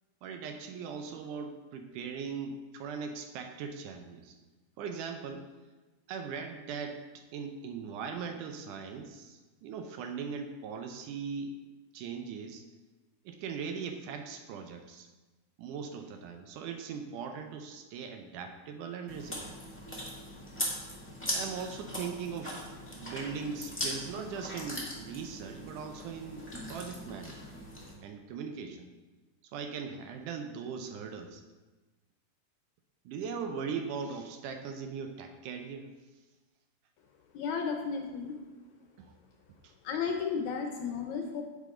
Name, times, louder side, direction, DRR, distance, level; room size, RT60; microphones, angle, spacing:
voice 1, 0.2-4.4 4.8-5.5 6.1-11.5 11.9-12.6 13.3-15.1 15.6-19.6 21.3-27.4 28.0-28.9 29.4-31.4 33.1-35.9 39.0-39.1 39.6-39.7, right 6 dB, 75° right, 6 dB, 2.1 m, -40 dB
Chewing mastication, 19.1-27.9, left 1 dB, 5° left, 1.1 m, -40 dB
voice 2, 37.3-38.4 39.8-41.4, left 6 dB, 70° left, 3 dB, 1.9 m, -33 dB
10.0 x 7.5 x 3.7 m, 1.2 s
omnidirectional pair, 3.9 m